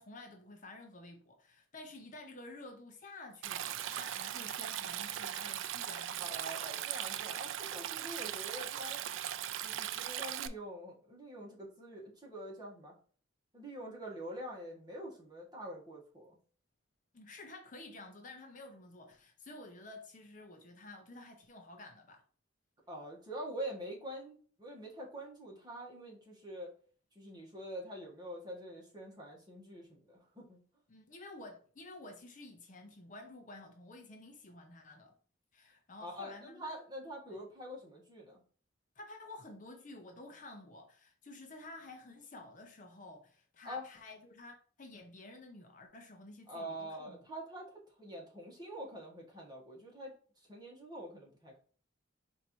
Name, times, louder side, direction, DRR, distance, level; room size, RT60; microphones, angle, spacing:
voice 1, 0.0-6.5 17.1-22.2 30.9-35.1 35.5-36.8 39.0-47.2, left 2 dB, 40° left, 0.6 m, -51 dB
Stream, 3.4-10.5, right 11 dB, 75° right, 0.3 m, -39 dB
voice 2, 6.2-9.0 9.6-12.9 13.5-16.4 22.9-26.7 27.1-30.6 36.0-38.4 43.6-43.8 46.5-50.1 50.5-51.6, right 1 dB, 20° right, 1.3 m, -45 dB
4.3 x 2.7 x 4.4 m
head